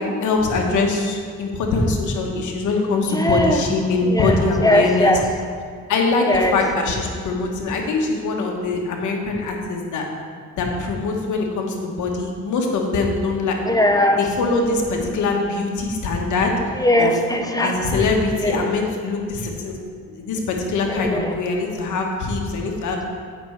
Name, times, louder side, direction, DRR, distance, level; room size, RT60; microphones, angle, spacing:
voice 1, 0.0-5.2 5.9-10.1 10.6-13.6 14.2-16.5 17.0-17.2 17.6-19.8 20.2-23.1, left 3 dB, 80° left, 1 dB, 1.3 m, -22 dB
voice 2, 3.1-3.6 4.1-5.2 6.3-6.6 13.7-14.2 16.8-18.1 18.4-18.6 20.9-21.4, left 1 dB, 10° left, 4 dB, 0.8 m, -19 dB
8.2 x 6.0 x 4.6 m, 2.1 s
cardioid pair, 90°, 30 cm